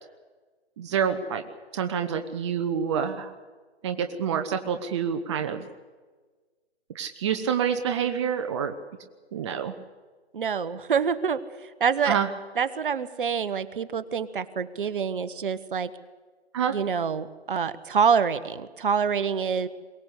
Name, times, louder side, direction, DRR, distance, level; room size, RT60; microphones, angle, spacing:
voice 1, 0.8-1.4 1.7-3.3 3.8-5.6 6.9-8.7 9.3-9.7 12.1-12.3 16.5-16.7, right 7 dB, 25° right, 7 dB, 1.0 m, -27 dB
voice 2, 10.3-12.2 12.6-15.9 16.7-19.7, right 6 dB, 50° right, 14 dB, 1.2 m, -26 dB
22.5 x 18.0 x 8.2 m, 1.4 s
hypercardioid pair, 150°, 33 cm